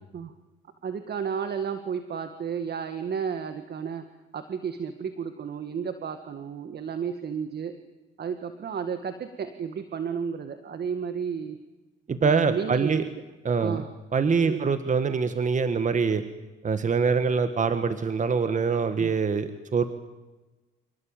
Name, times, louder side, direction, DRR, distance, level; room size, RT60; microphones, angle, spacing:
voice 1, 0.8-4.0 4.3-7.7 8.2-11.6 12.2-13.0 13.6-13.9 14.4-14.8 19.0-19.1, right 7 dB, 55° right, 9 dB, 1.9 m, -32 dB
voice 2, 12.1-13.1 13.5-13.8 14.1-16.2 16.6-19.9, right 5 dB, 40° right, 10 dB, 1.7 m, -24 dB
28.0 x 19.0 x 9.1 m, 1.1 s
cardioid pair, 90°, 20 cm